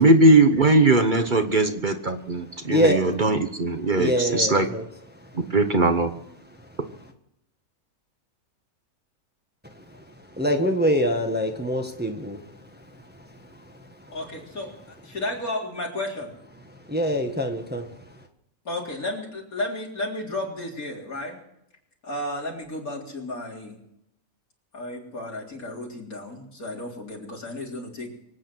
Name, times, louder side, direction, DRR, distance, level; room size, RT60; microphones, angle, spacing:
voice 1, 0.0-4.7 5.5-6.1, right 2 dB, 40° right, 7 dB, 1.2 m, -19 dB
voice 2, 2.7-3.0 4.0-4.9 9.8-10.0 10.3-12.4 16.9-17.9, equal, 5° right, 4 dB, 1.4 m, -24 dB
voice 3, 14.1-14.7 15.0-16.3 18.6-21.4 22.0-23.8 24.7-28.2, left 1 dB, 90° left, -2 dB, 4.2 m, -33 dB
24.0 x 9.1 x 6.1 m, 0.79 s
omnidirectional pair, 1.5 m